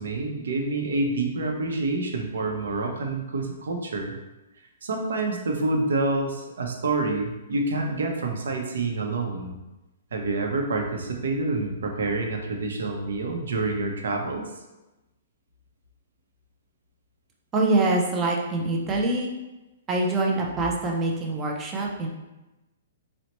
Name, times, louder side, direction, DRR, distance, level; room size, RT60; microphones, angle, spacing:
voice 1, 0.0-4.1 4.8-9.6 10.1-14.4, right 3 dB, 85° right, 2 dB, 0.6 m, -27 dB
voice 2, 17.5-19.3 19.9-22.1, right 2 dB, 15° right, -1 dB, 0.4 m, -24 dB
4.1 x 2.1 x 2.9 m, 1.0 s
hypercardioid pair, 175°, 0 cm